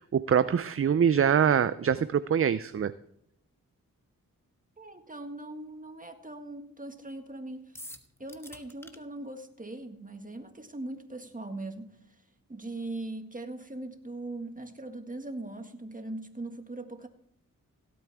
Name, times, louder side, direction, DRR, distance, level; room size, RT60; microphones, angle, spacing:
voice 1, 0.0-2.9, right 8 dB, 40° right, 15 dB, 0.5 m, -24 dB
voice 2, 4.8-7.6 8.2-11.9 12.5-17.1, right 2 dB, 25° right, 6 dB, 1.8 m, -40 dB
sound 1, 7.7-9.0, left 1 dB, 5° left, 1.3 m, -45 dB
16.5 x 8.5 x 3.5 m, 0.74 s
cardioid pair, 40°, 35 cm